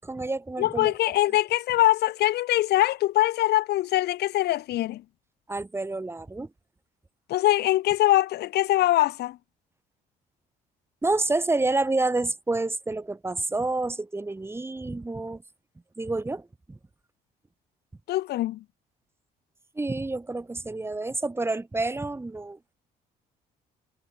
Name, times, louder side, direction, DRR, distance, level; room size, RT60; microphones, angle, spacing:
voice 1, 0.0-0.9 5.5-6.5 11.0-15.4 16.0-16.8 19.8-22.6, right 2 dB, 15° right, 7.8 m, -28 dB
voice 2, 0.6-5.0 7.3-9.4 18.1-18.6, left 15 dB, 75° left, 4.8 m, -23 dB
cardioid pair, 110°, 17 cm